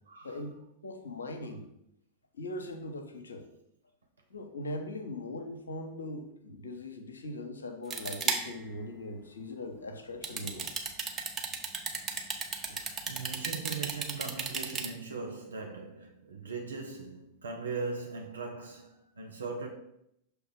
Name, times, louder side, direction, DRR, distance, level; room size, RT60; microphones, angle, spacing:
voice 1, 0.1-0.4 12.0-19.7, right 4 dB, 70° right, 0.7 m, -40 dB
voice 2, 0.8-1.6 2.3-3.5 4.3-10.8 12.6-12.9, left 1 dB, 75° left, 0.7 m, -40 dB
sound 1, 7.9-8.6 10.2-14.9, right 5 dB, 25° right, 0.7 m, -33 dB
6.3 x 3.2 x 4.8 m
figure-of-eight pair, 90°, 0 cm